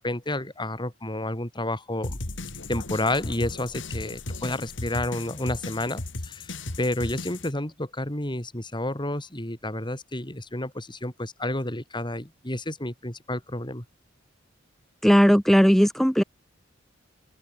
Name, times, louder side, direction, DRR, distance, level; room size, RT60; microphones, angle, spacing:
voice 1, 0.0-2.2 2.7-13.8, left 1 dB, 25° left, 4.6 m, -30 dB
sound 1, 2.0-7.5, left 2 dB, 70° left, 3.0 m, -35 dB
voice 2, 15.0-16.2, equal, ahead, 1.8 m, -17 dB
head